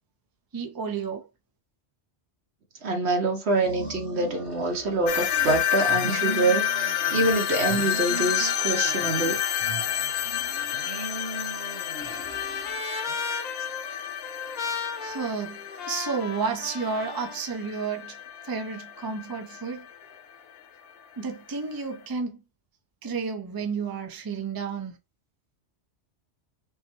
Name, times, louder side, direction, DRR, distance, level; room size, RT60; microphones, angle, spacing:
voice 1, 0.5-1.3 15.0-15.6 15.9-18.2 18.4-19.9 21.2-22.3 23.0-24.9, right 5 dB, 25° right, 0.6 m, -31 dB
voice 2, 2.8-9.4, right 2 dB, 70° right, 1.4 m, -25 dB
sound 1, 3.5-5.6 5.9-7.3 7.6-9.3 9.6-12.8, right 2 dB, 90° right, 2.0 m, -38 dB
sound 2, 5.1-20.0, left 10 dB, 85° left, 1.0 m, -30 dB
Trumpet, 11.1-17.4, left 4 dB, 50° left, 0.6 m, -36 dB
5.3 x 2.2 x 3.0 m
omnidirectional pair, 1.2 m